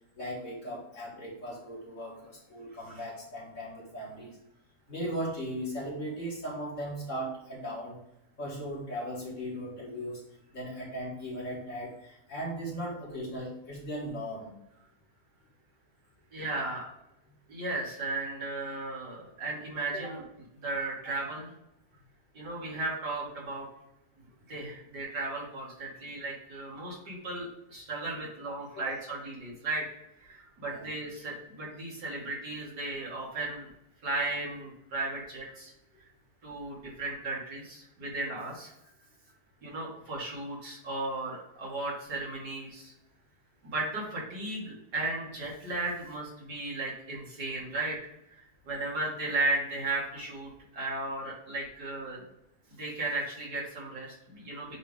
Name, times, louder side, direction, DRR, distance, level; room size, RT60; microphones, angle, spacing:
voice 1, 0.1-4.4 4.9-8.0 8.4-10.2 10.5-14.5 19.9-20.1 28.7-28.9 30.7-30.9, equal, 50° left, -4 dB, 2.3 m, -37 dB
voice 2, 16.3-16.8 17.5-20.2 20.6-21.5 22.3-23.7 24.5-29.8 30.2-33.7 34.0-35.7 36.4-38.7 39.6-42.9 43.6-48.0 48.6-52.2 52.7-54.8, right 2 dB, 80° right, -5 dB, 2.8 m, -35 dB
8.0 x 3.4 x 3.6 m, 0.83 s
omnidirectional pair, 1.8 m